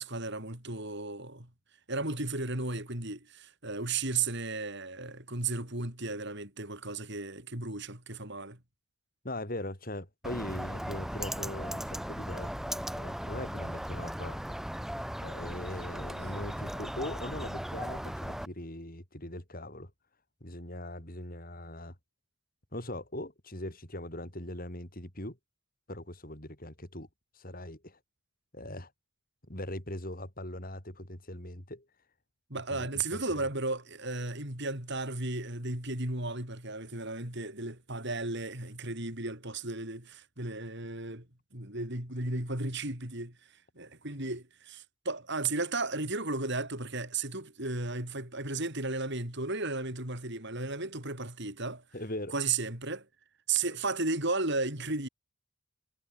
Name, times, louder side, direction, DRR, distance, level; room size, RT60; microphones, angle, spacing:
voice 1, 0.0-1.5 1.9-8.6 16.2-16.4 32.5-41.3 41.5-43.4 43.8-51.8 52.3-53.1 53.5-55.1, right 3 dB, 55° right, 6.3 m, -34 dB
voice 2, 9.2-14.4 15.2-19.9 20.4-22.0 22.7-25.4 25.9-27.1 27.3-28.0 28.5-28.9 29.5-31.9 32.7-33.5 51.9-52.3, left 1 dB, 40° left, 5.5 m, -40 dB
Bird, 10.2-18.5, equal, ahead, 0.5 m, -37 dB
head